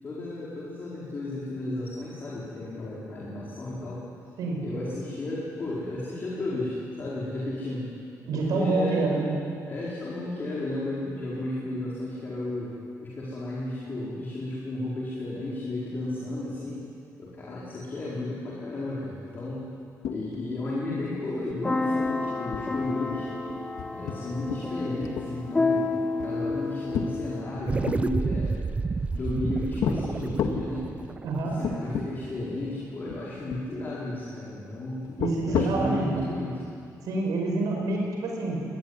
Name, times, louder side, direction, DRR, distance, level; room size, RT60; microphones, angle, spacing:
voice 1, 0.0-4.0 4.6-7.9 8.3-9.1 9.7-12.7 13.0-16.8 17.2-19.7 20.1-23.3 23.9-25.9 26.2-28.6 29.1-30.8 31.4-35.1 35.5-36.6, left 2 dB, 30° left, -6 dB, 4.7 m, -33 dB
voice 2, 8.3-9.3 31.2-31.6 35.2-36.2 37.0-38.6, right 3 dB, 80° right, 0 dB, 5.5 m, -27 dB
sound 1, 20.0-20.5 20.8-20.9 21.3-21.5 22.0-22.1 22.5-24.7 25.0-25.7 26.2-28.0 28.7-29.4 29.8-30.0 30.4-30.7 31.2-31.3 31.6-32.1 32.4-32.5 33.1-33.7 35.0-35.9, left 7 dB, 85° left, 2.1 m, -31 dB
sound 2, 21.6-27.4, left 3 dB, 15° left, 1.6 m, -29 dB
sound 3, 27.7-32.3, right 4 dB, 20° right, 0.5 m, -30 dB
23.5 x 20.0 x 9.9 m, 2.4 s
cardioid pair, 165°, 6 cm